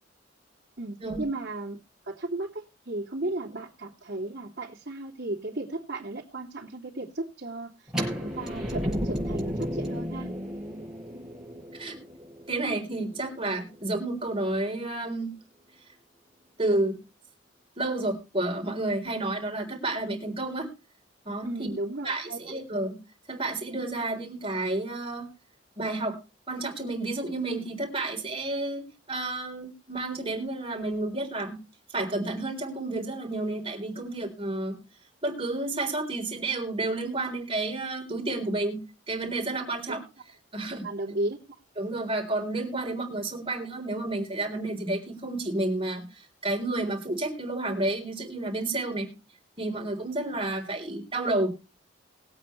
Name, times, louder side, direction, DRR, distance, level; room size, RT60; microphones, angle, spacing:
voice 1, 0.8-1.8 2.1-7.7 8.2-10.3 21.4-22.4 40.8-41.4, right 2 dB, 55° right, 2.9 m, -34 dB
sound 1, 7.9-13.7, equal, 5° right, 5.3 m, -33 dB
voice 2, 12.5-15.3 16.6-17.0 17.8-20.7 21.3-21.7 22.0-23.0 23.3-25.3 25.8-26.2 26.5-31.6 31.9-34.8 35.2-40.0 40.5-40.9 41.8-49.1 49.6-51.5, right 2 dB, 30° right, 3.9 m, -30 dB
21.0 x 8.5 x 3.2 m
head